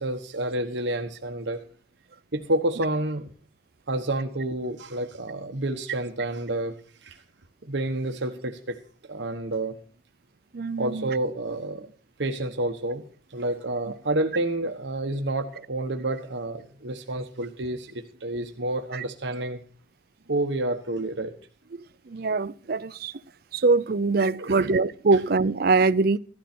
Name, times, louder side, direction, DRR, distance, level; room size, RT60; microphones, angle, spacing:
voice 1, 0.0-1.6 2.3-3.3 3.9-6.7 7.0-7.2 7.6-8.8 9.1-9.7 10.8-11.9 12.2-13.0 13.3-19.6 20.3-21.3 24.4-24.7, right 1 dB, 70° right, 1.2 m, -29 dB
voice 2, 10.5-11.1 18.9-19.0 22.1-23.1 23.5-26.2, right 3 dB, 50° right, 0.5 m, -23 dB
15.0 x 12.5 x 4.4 m
head